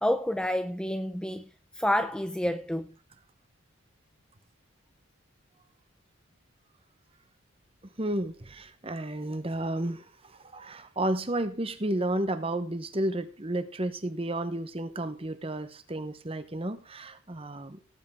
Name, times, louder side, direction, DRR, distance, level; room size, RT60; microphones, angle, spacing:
voice 1, 0.0-1.5 1.8-2.9, left 1 dB, 5° left, 0.5 m, -28 dB
voice 2, 8.0-17.8, right 1 dB, 25° right, 1.0 m, -32 dB
17.5 x 8.5 x 3.7 m
head